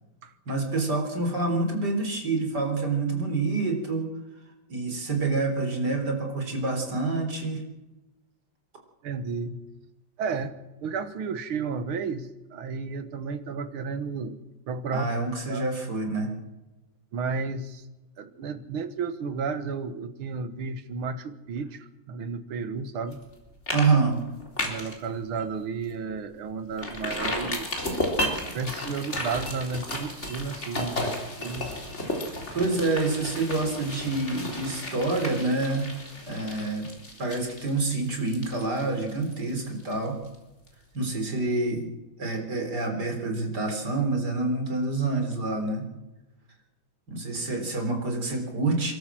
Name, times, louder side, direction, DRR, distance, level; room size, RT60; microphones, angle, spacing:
voice 1, 0.5-4.1 4.7-7.6 14.9-16.3 23.7-24.2 31.0-31.1 32.5-35.9 36.3-36.9 37.2-40.2 40.9-41.9 42.2-45.8 47.1-48.9, right 3 dB, 50° right, 4 dB, 4.5 m, -27 dB
voice 2, 9.0-9.6 10.2-10.5 10.8-14.4 14.7-15.1 15.5-15.6 17.1-17.9 18.2-23.2 24.6-28.0 28.5-31.8, right 5 dB, 85° right, 10 dB, 2.2 m, -32 dB
sound 1, 23.1-23.3 23.7-23.9 24.2-25.0 25.4-25.5 25.9-26.0 26.8-40.4 40.7-40.8, left 1 dB, 30° left, 4.2 m, -33 dB
28.0 x 13.0 x 7.6 m, 1.0 s
omnidirectional pair, 2.3 m